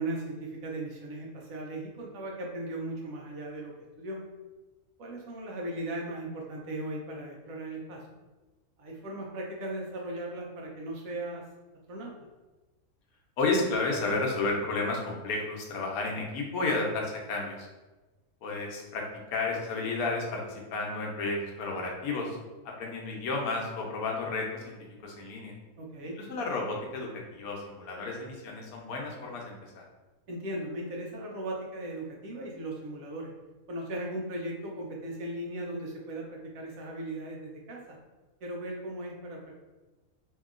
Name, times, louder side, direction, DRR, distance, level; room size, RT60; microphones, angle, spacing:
voice 1, 0.0-3.7 4.0-4.2 5.0-8.0 8.8-11.4 11.9-12.1 25.8-26.2 30.3-33.3 33.7-38.0 38.4-39.5, right 1 dB, 70° right, -1 dB, 1.1 m, -37 dB
voice 2, 13.4-17.7 18.4-19.1 19.3-22.4 22.6-24.8 25.0-25.5 26.2-29.8, left 3 dB, 80° left, 0 dB, 1.1 m, -32 dB
2.8 x 2.7 x 2.4 m, 1.2 s
omnidirectional pair, 1.5 m